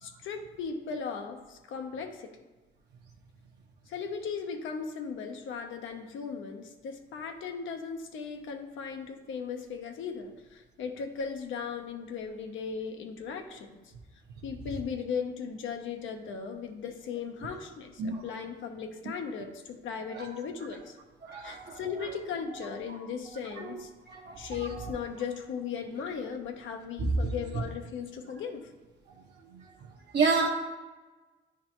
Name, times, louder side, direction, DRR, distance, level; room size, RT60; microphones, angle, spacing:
voice 1, 0.0-2.4 3.9-13.7 14.4-21.0 21.4-23.9 24.4-28.7, left 6 dB, 75° left, 5 dB, 0.8 m, -37 dB
voice 2, 21.2-21.8 22.9-23.0 23.6-23.8 24.1-24.9 27.0-27.1 30.1-30.5, right 4 dB, 60° right, -1 dB, 1.0 m, -30 dB
9.9 x 3.7 x 3.0 m, 1.2 s
cardioid pair, 90°, 20 cm